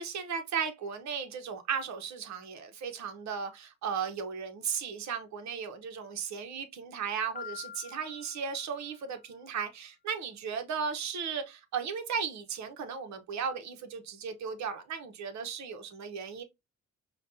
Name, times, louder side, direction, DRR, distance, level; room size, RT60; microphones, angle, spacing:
voice 1, 0.0-16.4, right 6 dB, 65° right, 0.9 m, -36 dB
Piano, 7.4-9.3, left 7 dB, 30° left, 0.6 m, -46 dB
5.1 x 2.3 x 2.6 m
cardioid pair, 90°, 30 cm